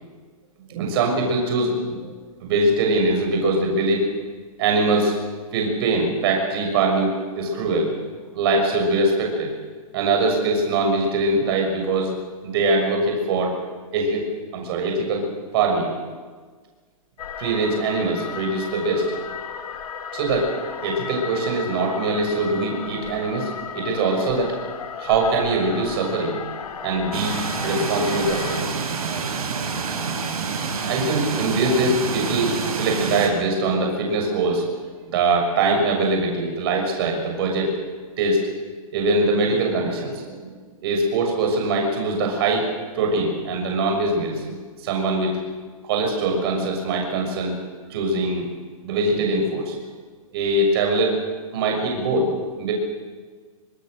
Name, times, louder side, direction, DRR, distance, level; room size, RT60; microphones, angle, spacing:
voice 1, 0.7-1.7 2.0-2.1 2.4-4.1 4.6-5.1 5.5-7.9 8.3-9.5 9.9-12.1 12.4-13.6 13.9-15.3 15.5-15.9 17.4-19.2 20.1-20.5 20.8-24.6 25.0-26.4 26.8-28.8 30.8-37.8 38.2-38.5 38.9-40.5 40.8-42.7 42.9-44.6 44.8-45.3 45.8-47.5 47.9-48.4 48.8-49.7 50.3-51.2 51.5-52.7, right 2 dB, 40° right, 2 dB, 6.6 m, -22 dB
sound 1, 17.2-28.6, left 7 dB, 85° left, 2.5 m, -34 dB
sound 2, 27.1-33.3, right 5 dB, 80° right, 5.8 m, -27 dB
24.5 x 22.5 x 6.6 m, 1.5 s
hypercardioid pair, 160°, 19 cm